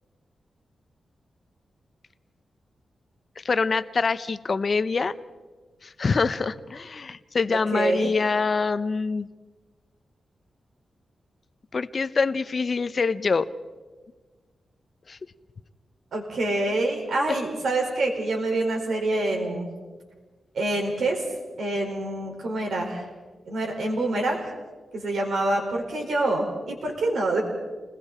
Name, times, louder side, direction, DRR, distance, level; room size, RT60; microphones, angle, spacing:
voice 1, 3.4-5.1 5.8-9.3 11.7-13.5 15.1-15.2, left 4 dB, 40° left, 13 dB, 0.7 m, -25 dB
voice 2, 7.5-8.1 16.1-19.7 20.5-21.2 21.6-23.1 23.4-24.5 24.9-27.4, right 2 dB, 80° right, 0 dB, 5.1 m, -26 dB
29.5 x 20.5 x 4.3 m, 1.3 s
wide cardioid pair, 130°, 0 cm